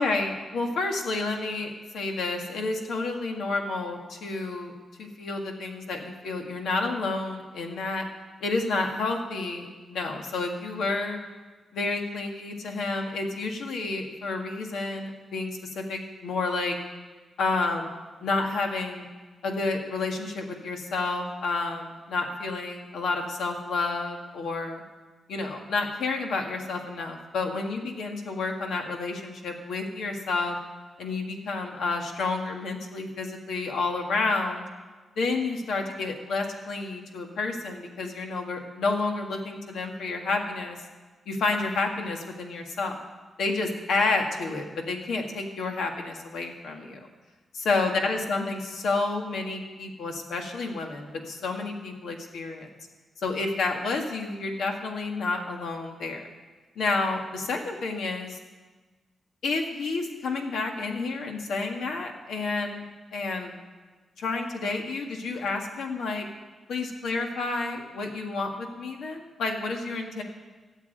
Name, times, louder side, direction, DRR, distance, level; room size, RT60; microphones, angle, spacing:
voice 1, 0.0-4.7 5.0-8.0 8.4-11.2 11.7-16.8 17.4-17.9 18.2-19.0 19.4-24.8 25.3-30.6 31.0-34.6 35.2-40.8 41.3-43.0 43.4-47.1 47.5-52.7 53.2-56.3 56.8-58.4 59.4-62.8 63.1-63.5 64.2-66.3 66.7-70.2, left 3 dB, 85° left, 3 dB, 1.8 m, -30 dB
14.0 x 7.4 x 9.2 m, 1.3 s
wide cardioid pair, 130°, 0 cm